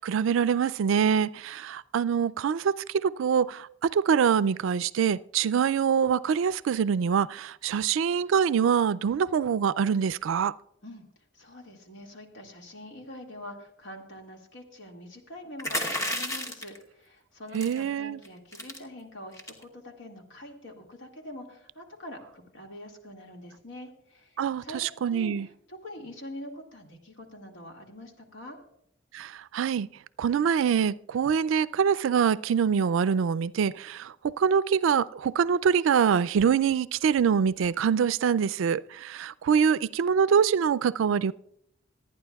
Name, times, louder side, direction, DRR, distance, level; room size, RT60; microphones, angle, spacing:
voice 1, 0.0-10.5 17.5-18.2 24.4-25.5 29.1-29.9 30.2-41.3, right 7 dB, 75° right, 0.3 m, -25 dB
voice 2, 11.3-24.8 25.1-25.3 25.7-28.6, left 1 dB, 70° left, 2.0 m, -44 dB
sound 1, 15.6-16.8 17.5-17.8 18.2-18.3 18.5-18.8 19.3-19.6, left 1 dB, 15° left, 1.0 m, -31 dB
26.5 x 9.5 x 2.3 m
head